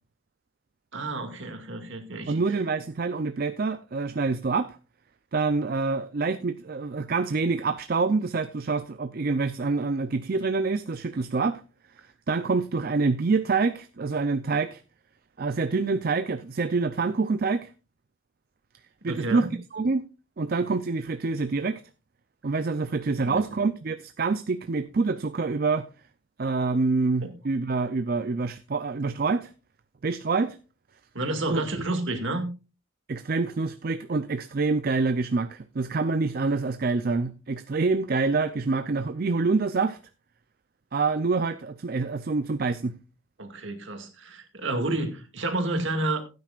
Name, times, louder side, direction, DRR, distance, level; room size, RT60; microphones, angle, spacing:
voice 1, 0.9-2.4 19.1-19.5 23.2-23.6 27.2-27.3 31.1-32.5 43.4-46.2, right 2 dB, 60° right, 2.1 m, -30 dB
voice 2, 2.3-4.8 5.3-11.6 12.3-14.8 15.4-17.7 19.0-20.0 20.4-21.8 22.4-25.9 26.4-29.5 30.0-30.6 31.5-31.6 33.1-40.0 40.9-43.0, right 4 dB, 45° right, 0.5 m, -26 dB
16.0 x 9.4 x 2.4 m
head